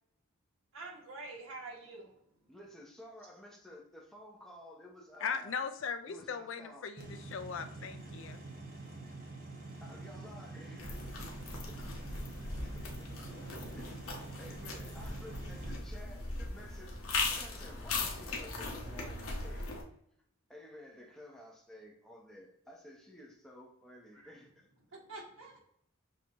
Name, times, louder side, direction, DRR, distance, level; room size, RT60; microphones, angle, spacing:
voice 1, 0.7-2.1 24.1-24.3 24.9-25.6, right 3 dB, 75° right, 1.6 m, -46 dB
voice 2, 2.5-5.6 6.1-6.9 8.0-8.2 9.8-11.3 11.7-11.8 12.1-12.8 13.6-19.9 20.5-24.7, left 1 dB, ahead, 0.8 m, -53 dB
voice 3, 5.2-8.4, left 6 dB, 65° left, 0.4 m, -39 dB
sound 1, 7.0-15.8, right 2 dB, 45° right, 0.9 m, -47 dB
sound 2, 10.8-19.8, left 3 dB, 85° left, 1.0 m, -39 dB
6.4 x 2.7 x 2.9 m
head